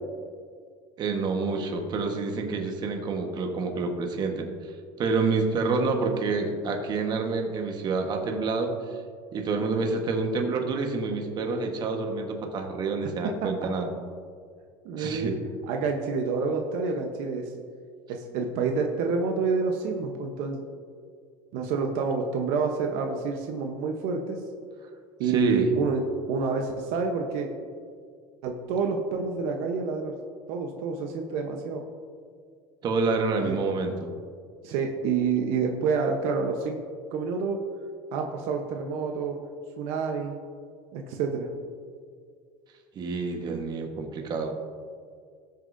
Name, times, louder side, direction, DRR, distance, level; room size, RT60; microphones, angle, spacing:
voice 1, 1.0-4.5 5.0-8.7 9.3-13.9 15.0-15.3 25.2-25.7 32.8-34.1 42.9-44.6, right 3 dB, 40° right, 3 dB, 1.4 m, -28 dB
voice 2, 14.8-15.4 15.7-17.4 18.1-20.6 21.5-24.4 25.2-26.0 26.3-27.5 28.4-30.1 30.5-31.8 33.4-33.6 34.6-36.8 37.1-37.6 38.1-39.4 39.8-40.4 40.9-41.5, right 5 dB, 70° right, 3 dB, 1.0 m, -28 dB
18.5 x 6.5 x 2.7 m, 2.1 s
supercardioid pair, 125°, 11 cm